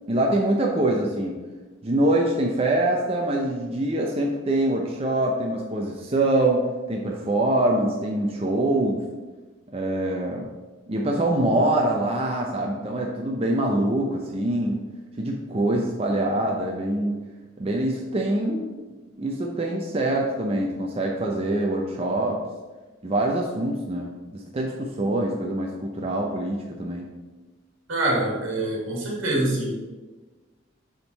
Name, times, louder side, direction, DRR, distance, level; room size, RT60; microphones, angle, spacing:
voice 1, 0.1-1.4 1.8-9.0 9.7-10.5 10.9-14.8 15.2-17.2 17.6-18.7 19.2-22.4 23.0-27.1, right 1 dB, 30° right, 0 dB, 0.5 m, -24 dB
voice 2, 27.9-29.7, right 1 dB, 80° right, -2 dB, 1.6 m, -25 dB
7.1 x 3.7 x 4.0 m, 1.2 s
head